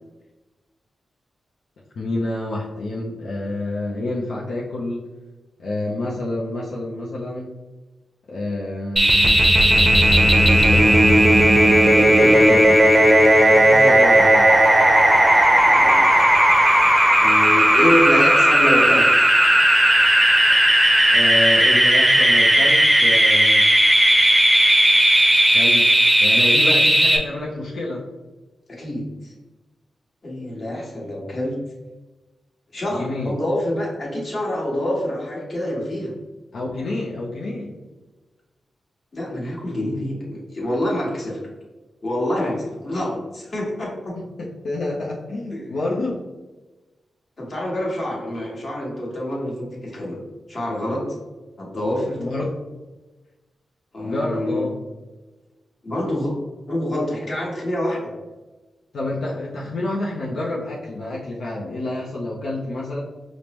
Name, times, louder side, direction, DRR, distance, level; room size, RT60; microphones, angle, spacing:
voice 1, 2.0-5.0 5.6-7.5 8.3-9.5 12.2-12.6 13.5-14.5 21.1-23.7 25.5-25.8 26.2-28.0 32.9-33.3 36.5-37.7 44.2-46.2 52.2-52.5 54.0-54.7 58.9-63.0, left 2 dB, 75° left, -5 dB, 0.6 m, -28 dB
sound 1, 9.0-27.2, right 1 dB, 15° right, 0.6 m, -15 dB
voice 2, 10.2-11.1 11.8-12.8 15.3-16.2 17.2-19.1 28.7-29.3 30.2-31.6 32.7-36.1 39.1-41.4 42.0-44.1 45.5-45.6 47.4-50.2 50.5-51.0 51.6-52.3 53.9-54.6 55.8-56.3 56.7-58.1, left 1 dB, 45° left, -4 dB, 1.4 m, -26 dB
5.1 x 2.1 x 3.0 m, 1.2 s
cardioid pair, 80°, 0 cm